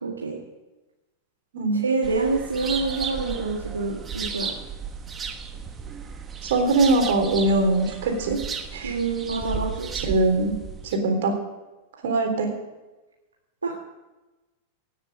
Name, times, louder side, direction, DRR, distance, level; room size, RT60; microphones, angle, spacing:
voice 1, 0.0-0.4 1.7-4.5 8.8-9.9 13.6-13.7, right 3 dB, 85° right, -1 dB, 1.8 m, -27 dB
sound 1, 2.0-11.0, right 6 dB, 25° right, 1.4 m, -34 dB
voice 2, 6.4-8.4 8.7-9.0 10.0-10.5 10.8-11.3 12.0-12.5, right 2 dB, 65° right, 3 dB, 3.7 m, -22 dB
17.5 x 7.4 x 7.9 m, 1.1 s
figure-of-eight pair, 95°, 0 cm